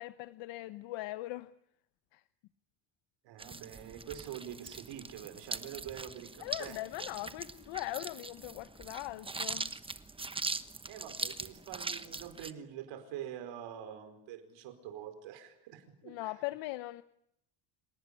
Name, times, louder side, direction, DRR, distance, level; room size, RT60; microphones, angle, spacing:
voice 1, 0.0-1.5 2.1-2.2 6.4-9.7 16.0-17.0, left 18 dB, 80° left, 13 dB, 1.0 m, -40 dB
voice 2, 3.2-6.8 10.9-16.3, right 10 dB, 75° right, 9 dB, 4.9 m, -45 dB
sound 1, 3.4-12.5, right 3 dB, 10° right, 1.1 m, -41 dB
28.0 x 18.0 x 10.0 m, 0.77 s
cardioid pair, 130°, 44 cm